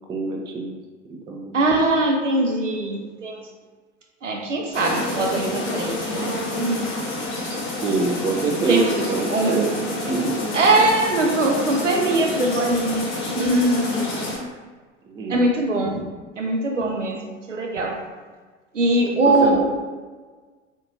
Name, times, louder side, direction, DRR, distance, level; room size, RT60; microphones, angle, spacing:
voice 1, 0.1-0.7 1.3-1.7 7.8-9.7 10.1-10.4 15.1-15.5 19.2-19.6, right 3 dB, 15° right, 1 dB, 0.3 m, -25 dB
voice 2, 1.5-3.4 4.2-6.9 8.7-8.8 9.3-9.7 10.5-14.1 15.3-16.0 16.4-18.0 18.7-19.6, right 2 dB, 90° right, 1 dB, 0.5 m, -21 dB
sound 1, 4.7-14.4, left 2 dB, 35° left, 0.9 m, -28 dB
3.7 x 2.7 x 2.6 m, 1.4 s
figure-of-eight pair, 75°, 36 cm